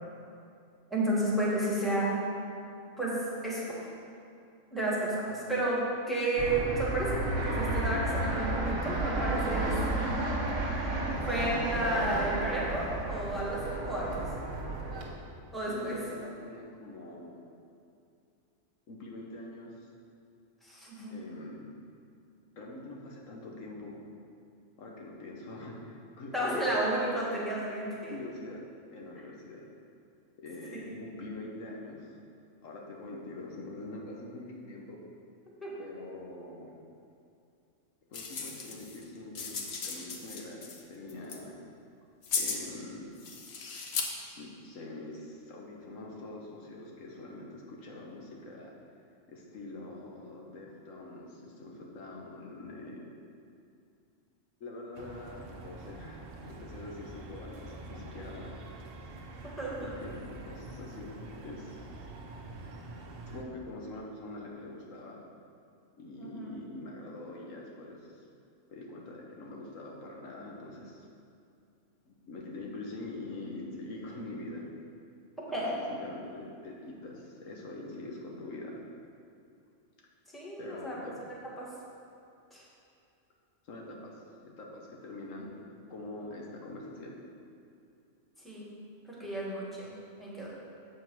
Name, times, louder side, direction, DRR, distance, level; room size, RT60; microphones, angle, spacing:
voice 1, 0.9-2.2 3.0-3.7 4.7-5.8 6.1-14.3 15.5-16.0 20.6-21.1 26.3-28.1 30.7-30.9 35.6-35.7 59.6-59.7 66.2-66.5 75.5-75.7 80.3-81.0 81.6-81.7 82.5-82.6 88.4-88.7 89.1-89.9 90.2-90.5, right 1 dB, ahead, -7 dB, 1.5 m, -32 dB
Fixed-wing aircraft airplane, 6.4-15.1, right 2 dB, 75° right, 1.4 m, -32 dB
voice 2, 15.7-17.5 18.9-19.9 21.1-21.7 22.5-24.0 24.8-26.8 28.1-28.7 28.9-29.7 30.4-32.1 32.6-35.0 35.8-36.7 38.1-41.6 42.3-43.1 44.4-48.7 49.3-53.2 54.6-58.5 59.8-62.0 63.3-65.2 66.0-68.3 68.7-71.1 72.0-74.6 75.5-78.8 80.6-81.2 83.6-85.6 85.9-87.3, left 2 dB, 80° left, -2 dB, 1.4 m, -44 dB
sound 1, 38.1-39.0 39.4-40.8 41.1-41.4 42.2-42.7 43.2-44.0, left 5 dB, 60° left, 1.0 m, -36 dB
sound 2, 54.9-63.5, right 2 dB, 55° right, 0.8 m, -46 dB
7.6 x 4.5 x 6.0 m, 2.5 s
omnidirectional pair, 1.3 m